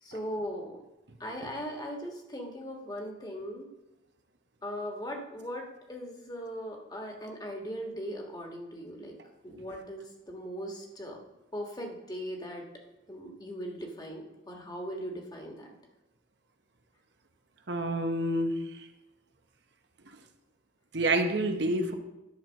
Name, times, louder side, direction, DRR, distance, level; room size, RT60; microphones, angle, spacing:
voice 1, 0.0-0.8 1.2-3.7 4.6-9.1 9.4-11.2 11.5-12.7 13.1-15.7, equal, 20° left, 1 dB, 1.4 m, -39 dB
voice 2, 17.7-18.5 20.9-21.9, right 1 dB, 65° right, 6 dB, 1.0 m, -27 dB
10.5 x 4.5 x 6.3 m, 0.98 s
head